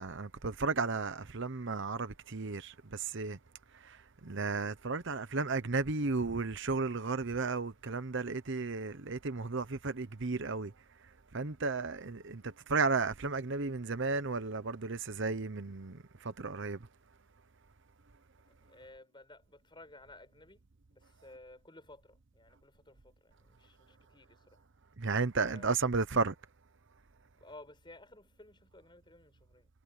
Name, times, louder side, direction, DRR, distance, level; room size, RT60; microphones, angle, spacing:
voice 1, 0.0-3.4 3.7-10.7 11.3-16.8 25.0-26.3, right 4 dB, 60° right, 1.0 m, -34 dB
voice 2, 18.5-20.6 20.9-24.6 25.4-25.7 27.4-29.7, left 2 dB, 20° left, 7.8 m, -55 dB
head